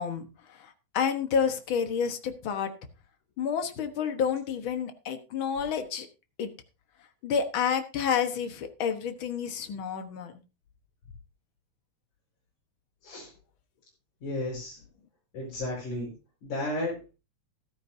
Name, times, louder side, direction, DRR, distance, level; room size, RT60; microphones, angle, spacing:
voice 1, 0.0-2.7 3.4-6.1 6.4-6.5 7.2-10.4, left 7 dB, 55° left, 7 dB, 1.6 m, -29 dB
voice 2, 14.2-14.8 15.3-16.1 16.4-17.0, left 1 dB, 75° left, -5 dB, 6.2 m, -33 dB
14.5 x 12.5 x 2.7 m, 0.30 s
omnidirectional pair, 3.4 m